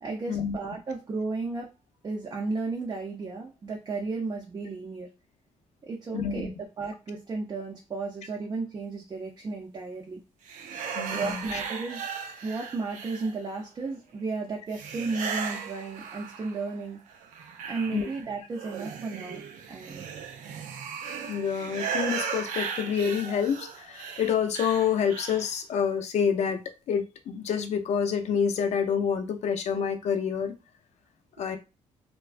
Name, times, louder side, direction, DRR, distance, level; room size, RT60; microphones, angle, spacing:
voice 1, 0.0-1.7 2.0-5.1 5.8-10.2 11.1-12.1 12.4-17.0 17.7-19.4 19.7-20.1, right 3 dB, 30° right, -1 dB, 0.5 m, -34 dB
voice 2, 6.1-6.5 10.9-11.6 17.9-18.1 21.3-26.6 26.9-30.5 31.4-31.6, left 7 dB, 60° left, 7 dB, 0.4 m, -27 dB
sound 1, 10.5-13.6 14.7-16.7 17.1-25.5, right 6 dB, 90° right, 0.4 m, -36 dB
2.4 x 2.2 x 2.4 m, 0.29 s
cardioid pair, 120°, 13 cm